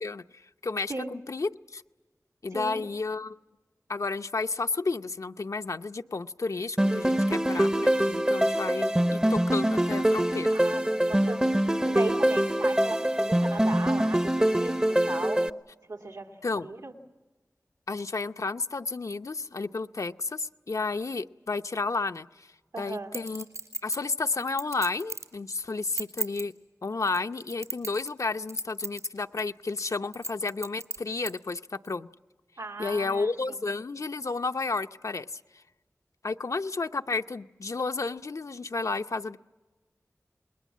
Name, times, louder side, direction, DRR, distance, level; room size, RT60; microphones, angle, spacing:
voice 1, 0.0-1.8 2.4-3.4 3.9-10.5 16.4-16.7 17.9-22.5 22.8-23.5 23.8-26.5 26.8-32.1 32.8-35.4 36.2-39.4, left 3 dB, 70° left, 8 dB, 0.7 m, -32 dB
voice 2, 2.5-2.9 10.5-15.4 15.9-16.9 22.7-23.2 32.6-33.6, right 2 dB, 85° right, 3 dB, 2.5 m, -37 dB
sound 1, 6.8-15.5, right 1 dB, 15° right, 0.7 m, -24 dB
Chink clink, 23.1-25.3 25.8-26.4 27.1-28.2 28.5-29.1 29.4-29.5 30.1-31.3 31.9-32.0, right 2 dB, 65° right, 3.6 m, -35 dB
28.0 x 21.0 x 7.4 m, 1.2 s
wide cardioid pair, 65°, 6 cm